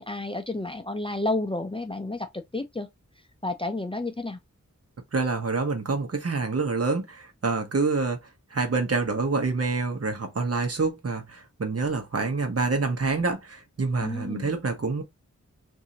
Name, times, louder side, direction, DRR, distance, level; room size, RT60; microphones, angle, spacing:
voice 1, 0.0-2.9 3.4-4.4 14.0-14.5, left 2 dB, 20° left, 0.5 m, -31 dB
voice 2, 5.1-8.2 8.5-15.0, right 4 dB, 55° right, 1.0 m, -27 dB
2.7 x 2.7 x 3.8 m
wide cardioid pair, 70°, 30 cm